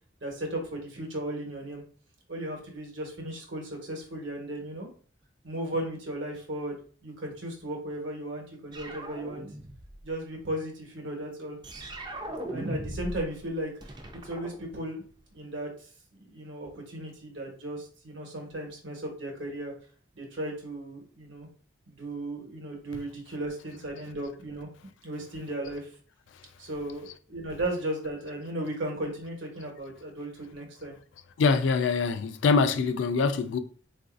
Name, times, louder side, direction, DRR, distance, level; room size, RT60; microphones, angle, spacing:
voice 1, 0.2-1.8 2.3-4.9 5.4-9.4 10.0-11.6 12.5-14.0 14.2-15.0 15.3-19.7 20.1-21.5 21.9-24.7 25.0-25.9 26.6-31.0, right 1 dB, 75° right, 1.0 m, -36 dB
sound 1, 8.7-10.0 11.6-13.3 13.6-15.2, right 1 dB, 20° right, 0.3 m, -38 dB
voice 2, 31.4-33.6, left 4 dB, 70° left, 0.3 m, -24 dB
3.8 x 2.5 x 2.4 m
head